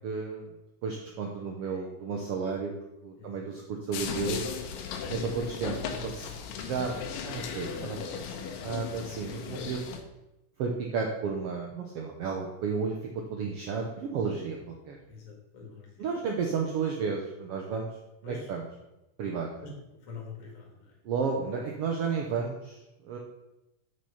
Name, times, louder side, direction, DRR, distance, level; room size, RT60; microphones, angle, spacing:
voice 1, 0.0-0.5 0.8-2.7 3.0-4.4 5.1-6.3 6.6-6.9 7.3-9.8 10.6-13.0 13.3-15.0 16.0-17.9 18.2-18.6 19.2-19.5 21.0-23.2, right 5 dB, 85° right, 1 dB, 1.3 m, -32 dB
sound 1, 3.9-10.0, left 6 dB, 85° left, 2.5 m, -37 dB
voice 2, 15.1-16.1 18.2-18.5 19.6-19.7 20.0-21.0, left 5 dB, 50° left, 0 dB, 2.6 m, -46 dB
6.2 x 5.9 x 5.8 m, 0.95 s
omnidirectional pair, 3.7 m